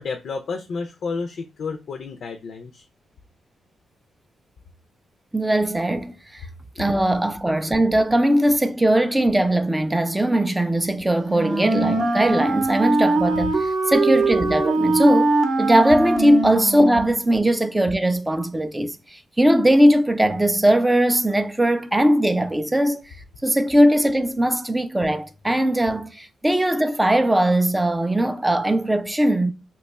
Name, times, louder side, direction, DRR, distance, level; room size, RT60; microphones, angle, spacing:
voice 1, 0.0-2.8 6.8-6.9, left 4 dB, 60° left, 0.4 m, -31 dB
voice 2, 5.3-6.5 6.8-23.0 23.4-29.5, right 1 dB, 10° right, 0.3 m, -20 dB
Wind instrument woodwind instrument, 11.2-17.2, right 3 dB, 50° right, 0.6 m, -22 dB
2.9 x 2.3 x 4.1 m
cardioid pair, 130°, 0 cm